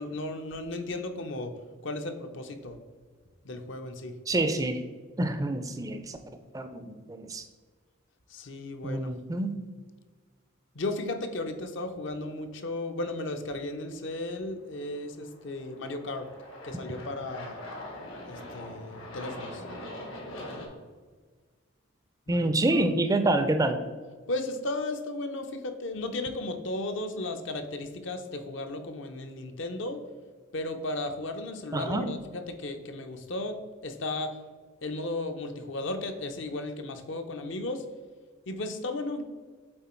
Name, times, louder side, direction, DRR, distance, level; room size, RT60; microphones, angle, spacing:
voice 1, 0.0-1.6 1.8-2.8 3.4-4.2 8.3-9.2 10.7-16.3 16.6-17.6 18.3-19.6 22.3-22.9 24.3-30.0 30.5-34.4 34.8-37.9 38.5-39.2, left 2 dB, 65° left, 7 dB, 0.6 m, -35 dB
voice 2, 4.3-4.8 5.2-6.2 6.5-7.4 8.8-9.6 22.3-23.8 31.7-32.0, right 2 dB, 15° right, 8 dB, 0.3 m, -27 dB
Aircraft, 14.9-20.7, left 1 dB, 85° left, 1.5 m, -42 dB
7.9 x 3.8 x 4.3 m, 1.5 s
head